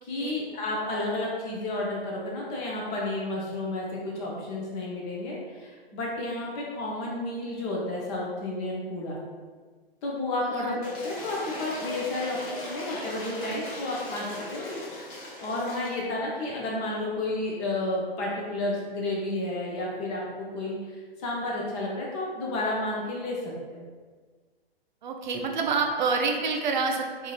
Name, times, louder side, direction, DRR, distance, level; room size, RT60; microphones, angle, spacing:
voice 1, 0.0-9.2 10.0-14.7 15.4-23.8, left 2 dB, 20° left, -3 dB, 0.4 m, -31 dB
voice 2, 10.4-10.8 25.0-27.3, right 4 dB, 50° right, 2 dB, 0.4 m, -28 dB
Cheering / Applause / Crowd, 10.8-16.0, left 1 dB, 35° left, 1.0 m, -39 dB
3.7 x 2.5 x 2.3 m, 1.5 s
figure-of-eight pair, 110°, 30 cm